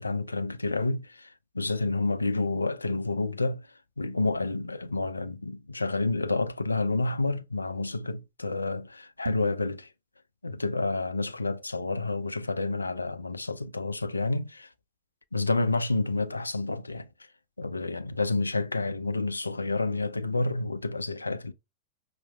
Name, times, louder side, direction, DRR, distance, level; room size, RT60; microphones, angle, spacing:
voice 1, 0.0-3.7 4.0-9.9 10.4-14.7 15.3-17.1 17.6-21.5, left 3 dB, 80° left, 0.3 m, -29 dB
sound 1, 9.1-9.7, right 2 dB, 70° right, 0.4 m, -36 dB
5.7 x 2.0 x 2.3 m
figure-of-eight pair, 90°, 0 cm